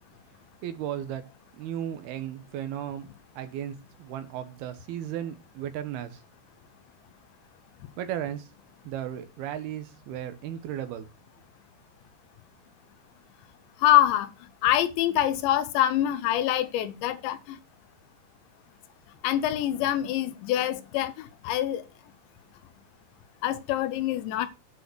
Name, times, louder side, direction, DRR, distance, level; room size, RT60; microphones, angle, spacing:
voice 1, 0.6-1.3 1.6-3.1 3.4-6.2 8.0-8.5 8.8-11.1, right 10 dB, 70° right, 2.8 m, -35 dB
voice 2, 13.8-14.3 14.6-17.6 19.2-21.8 23.4-24.5, left 12 dB, 80° left, 3.2 m, -25 dB
9.3 x 6.1 x 6.2 m
omnidirectional pair, 5.2 m